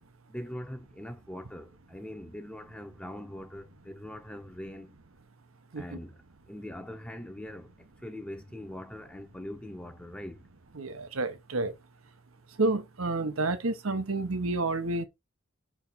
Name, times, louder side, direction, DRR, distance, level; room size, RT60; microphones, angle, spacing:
voice 1, 0.3-5.0 5.8-6.2 6.5-10.4, left 1 dB, 5° left, 0.8 m, -42 dB
voice 2, 10.8-11.7 12.6-15.0, right 2 dB, 85° right, 1.0 m, -29 dB
5.8 x 4.5 x 4.0 m
head